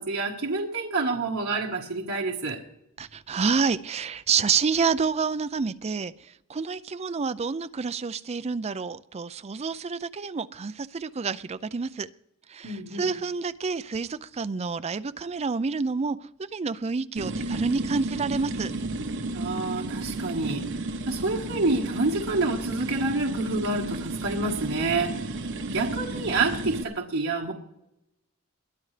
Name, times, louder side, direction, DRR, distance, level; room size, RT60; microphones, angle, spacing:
voice 1, 0.0-2.6 12.6-13.2 19.3-20.6 21.1-25.2 25.7-27.5, right 3 dB, 75° right, 1.5 m, -28 dB
voice 2, 3.0-12.1 12.5-18.7, right 5 dB, 30° right, 0.4 m, -28 dB
sound 1, 17.2-26.8, right 2 dB, 60° right, 1.0 m, -33 dB
22.0 x 13.0 x 3.3 m
head